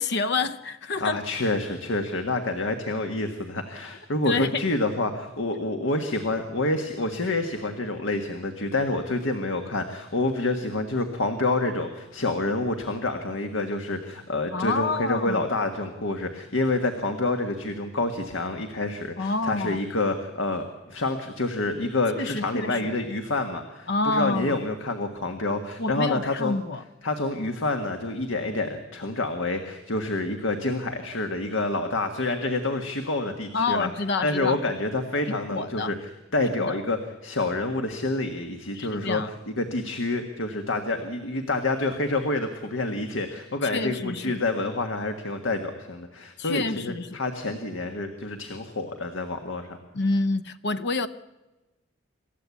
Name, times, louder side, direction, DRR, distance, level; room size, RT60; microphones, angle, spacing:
voice 1, 0.0-1.2 4.2-4.7 14.5-15.5 19.2-19.8 22.2-22.9 23.9-24.6 25.8-26.8 33.5-34.6 35.3-35.9 36.6-36.8 38.7-39.3 43.7-44.4 46.4-47.2 49.9-51.1, left 3 dB, 60° left, 0.7 m, -28 dB
voice 2, 1.0-26.5 27.0-33.9 34.2-35.9 36.3-49.8, left 2 dB, 80° left, 1.7 m, -28 dB
27.0 x 14.0 x 8.4 m
head